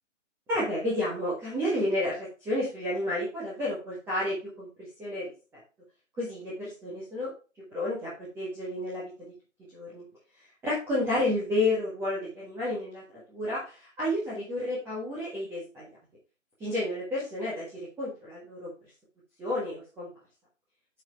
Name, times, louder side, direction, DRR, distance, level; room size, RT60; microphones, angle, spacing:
voice 1, 0.5-4.7 5.0-5.3 6.2-7.3 7.7-9.1 9.7-10.0 10.6-15.9 16.6-18.7 19.4-20.1, left 1 dB, 5° right, -8 dB, 1.5 m, -31 dB
9.1 x 4.7 x 4.4 m, 0.33 s
figure-of-eight pair, 140°, 39 cm